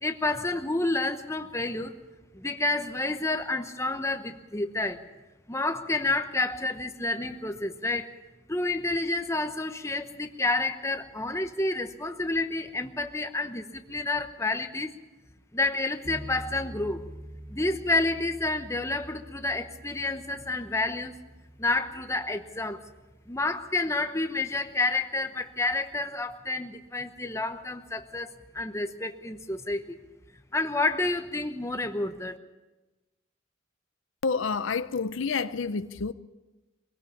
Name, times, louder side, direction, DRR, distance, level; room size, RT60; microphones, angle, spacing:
voice 1, 0.0-1.9 2.3-5.0 5.5-8.1 8.5-14.9 15.5-17.0 17.5-21.2 21.6-22.8 23.3-30.0 30.5-32.4, left 2 dB, 15° left, 0.9 m, -29 dB
sound 1, 16.0-24.2, right 1 dB, 10° right, 1.8 m, -46 dB
voice 2, 34.2-36.1, left 5 dB, 65° left, 0.6 m, -29 dB
23.0 x 17.0 x 7.2 m
head